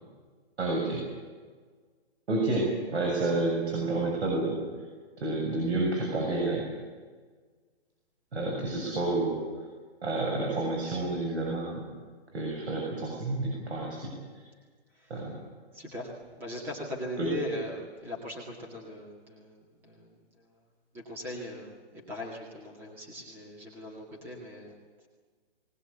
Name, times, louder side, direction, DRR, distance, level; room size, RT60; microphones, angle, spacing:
voice 1, 0.6-1.0 2.3-4.6 5.2-6.7 8.3-9.4 10.0-11.9 12.3-14.1 15.1-15.4 17.2-17.3, right 2 dB, 90° right, 0 dB, 7.1 m, -29 dB
voice 2, 15.7-16.1 16.4-20.1 20.4-20.5 20.9-24.8, left 1 dB, 5° right, -2 dB, 2.0 m, -39 dB
20.5 x 20.0 x 8.3 m, 1.5 s
hypercardioid pair, 180°, 32 cm